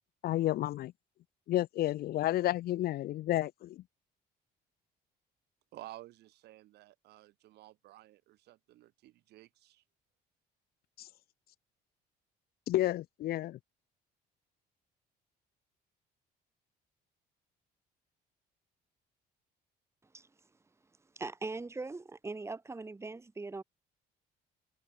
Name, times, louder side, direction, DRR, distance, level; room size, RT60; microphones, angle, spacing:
voice 1, 0.2-0.9 1.5-3.8 11.0-11.1 12.7-13.6, left 14 dB, 65° left, 0.8 m, -31 dB
voice 2, 5.7-9.8, right 16 dB, 75° right, 5.3 m, -53 dB
voice 3, 21.2-23.6, right 3 dB, 15° right, 2.1 m, -40 dB
cardioid pair, 110°, 17 cm